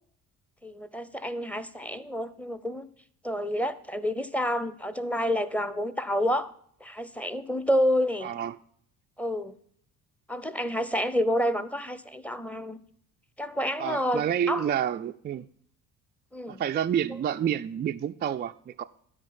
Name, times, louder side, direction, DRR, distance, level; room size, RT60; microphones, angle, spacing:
voice 1, 0.6-2.9 3.2-6.5 6.8-8.3 9.2-9.6 10.3-12.8 13.4-14.7 16.3-16.6, equal, 5° left, 0.7 m, -29 dB
voice 2, 8.2-8.6 13.8-15.5 16.5-18.8, right 9 dB, 25° right, 0.3 m, -29 dB
12.0 x 5.1 x 5.5 m
hypercardioid pair, 45°, 44 cm